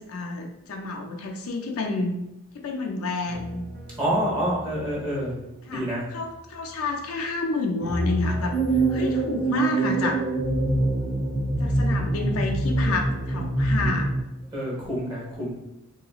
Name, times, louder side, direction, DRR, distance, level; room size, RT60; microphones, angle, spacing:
voice 1, 0.1-2.2 2.5-3.6 5.7-8.6 8.9-10.2 11.6-14.1, left 3 dB, 70° left, 2 dB, 0.5 m, -29 dB
sound 1, 3.3-7.4 7.8-13.3 13.7-14.2, equal, 45° right, 0.6 m, -37 dB
voice 2, 4.0-5.3 5.7-6.1 14.5-15.5, equal, 20° right, -5 dB, 1.2 m, -27 dB
sound 2, 8.5-14.2, right 2 dB, 5° left, 0.5 m, -24 dB
3.1 x 2.9 x 2.4 m, 0.90 s
head